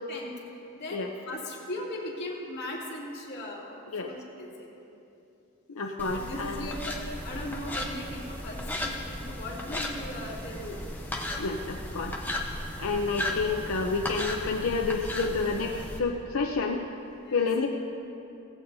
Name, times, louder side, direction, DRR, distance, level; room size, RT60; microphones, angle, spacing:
voice 1, 0.7-3.8 4.0-4.7 6.1-10.8 12.8-13.0 17.2-17.5, left 1 dB, 50° left, -5 dB, 2.8 m, -38 dB
voice 2, 5.7-6.7 11.4-12.2 12.8-16.8 17.3-17.7, left 4 dB, 85° left, 1 dB, 0.7 m, -29 dB
sound 1, 6.0-16.0, left 1 dB, 10° left, 0.9 m, -35 dB
17.0 x 15.5 x 2.7 m, 2.8 s
head